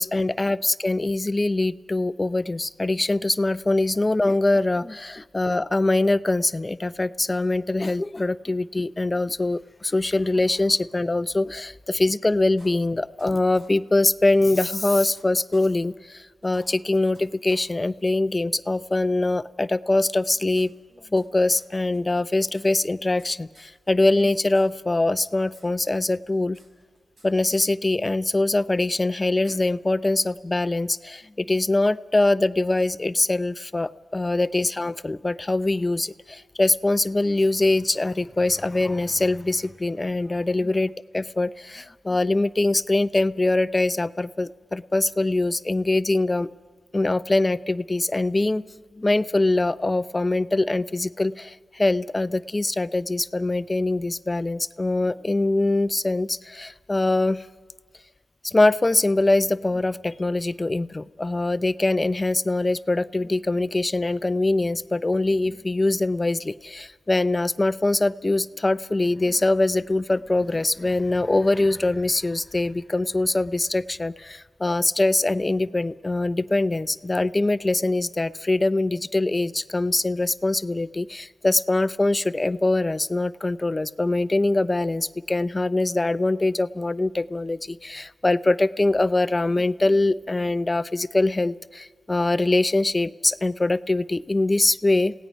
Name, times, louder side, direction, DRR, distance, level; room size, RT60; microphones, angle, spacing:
voice 1, 0.0-20.7 21.1-26.6 27.2-46.5 46.9-48.6 49.0-57.4 58.4-95.1, left 2 dB, 30° left, 14 dB, 0.5 m, -23 dB
sound 1, 12.6-13.3 13.5-13.7 14.0-14.1 14.4-15.2 15.5-15.6 16.0-16.1 16.4-17.2 17.5-17.6 18.0-18.1 18.9-19.0 20.1-21.3 21.5-21.7 21.9-22.0 22.3-23.3 23.5-23.7 24.0-24.7 24.9-25.7 25.9-27.3 27.5-27.7 28.8-28.9 29.4-29.5, right 1 dB, 75° right, 6.1 m, -54 dB
29.5 x 17.5 x 5.3 m, 1.5 s
cardioid pair, 55°, 0 cm